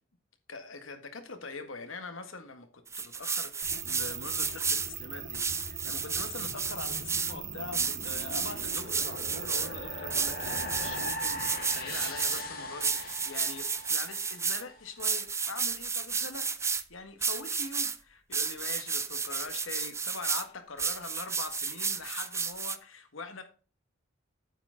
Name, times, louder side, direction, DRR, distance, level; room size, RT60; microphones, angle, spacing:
voice 1, 0.5-23.4, left 3 dB, 80° left, 1.7 m, -43 dB
sound 1, 2.9-4.9 5.3-7.3 7.7-9.7 10.1-12.4 12.8-14.6 15.0-16.8 17.2-18.0 18.3-20.4 20.8-22.8, right 5 dB, 15° right, 0.5 m, -32 dB
sound 2, 3.6-11.1, right 8 dB, 60° right, 1.3 m, -41 dB
sound 3, 5.4-14.8, left 1 dB, 50° left, 2.2 m, -41 dB
8.8 x 7.9 x 3.8 m
head